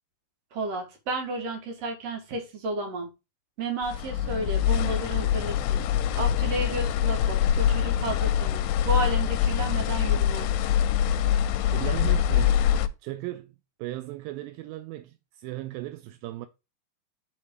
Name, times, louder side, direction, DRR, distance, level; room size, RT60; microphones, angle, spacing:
voice 1, 0.5-3.1 3.6-5.8 6.1-10.5, right 2 dB, 50° right, 2.6 m, -32 dB
sound 1, 3.8-12.9, left 9 dB, 85° left, 2.3 m, -24 dB
voice 2, 11.7-12.7 13.0-16.5, right 17 dB, 85° right, 2.2 m, -37 dB
8.0 x 3.8 x 4.6 m
omnidirectional pair, 4.1 m